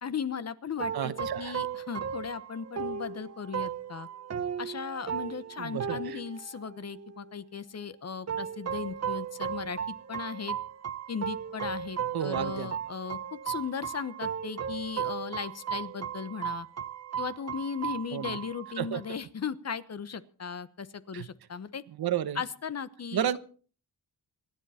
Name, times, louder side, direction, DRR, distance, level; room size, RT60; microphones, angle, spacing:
voice 1, 0.0-4.1 4.6-10.6 11.1-16.7 17.2-21.8 22.3-23.4, left 6 dB, 40° left, 14 dB, 1.1 m, -37 dB
sound 1, 0.8-7.4 8.3-19.1, right 8 dB, 40° right, 1.3 m, -36 dB
voice 2, 0.9-1.6 5.6-6.2 12.1-12.7 18.1-18.4 18.8-19.0 21.1-21.3 22.0-22.4 23.1-23.4, right 10 dB, 70° right, 13 dB, 1.1 m, -32 dB
27.0 x 10.5 x 4.3 m, 0.41 s
wide cardioid pair, 115°, 39 cm